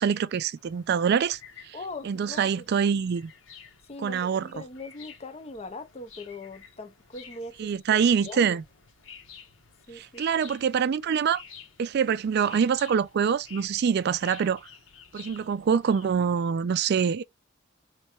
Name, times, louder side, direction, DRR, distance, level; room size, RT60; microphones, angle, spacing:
voice 1, 0.0-1.4 1.6-1.8 2.0-3.3 4.0-4.5 7.6-8.6 9.9-11.4 11.8-14.7 15.1-17.2, right 7 dB, 55° right, 0.3 m, -25 dB
sound 1, 0.5-16.1, left 7 dB, 65° left, 1.2 m, -51 dB
voice 2, 1.7-2.6 3.9-7.7 8.2-8.6 9.9-10.2, left 2 dB, 30° left, 0.6 m, -41 dB
3.2 x 3.0 x 4.4 m
head